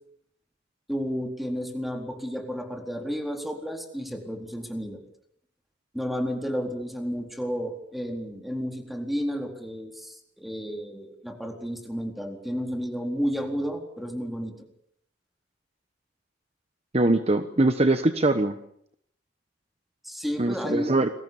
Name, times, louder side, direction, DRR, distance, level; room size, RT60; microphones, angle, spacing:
voice 1, 0.9-5.0 5.9-14.7 20.0-20.9, equal, ahead, 3 dB, 4.1 m, -32 dB
voice 2, 16.9-18.6 20.4-21.1, right 2 dB, 35° right, 9 dB, 1.1 m, -22 dB
29.5 x 22.5 x 7.1 m, 0.69 s
head